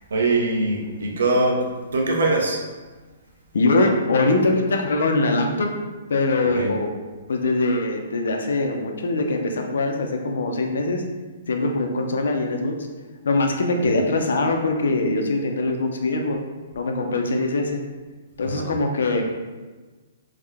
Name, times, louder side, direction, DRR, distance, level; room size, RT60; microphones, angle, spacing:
voice 1, 0.1-2.6 6.5-6.7 13.8-14.0 18.4-18.7, right 2 dB, 85° right, 1 dB, 0.6 m, -23 dB
voice 2, 3.5-5.7 6.1-6.9 7.3-11.0 11.5-12.8 13.2-16.4 16.7-17.8 18.4-19.2, left 2 dB, 80° left, 3 dB, 0.5 m, -22 dB
3.5 x 2.2 x 3.4 m, 1.3 s
hypercardioid pair, 175°, 0 cm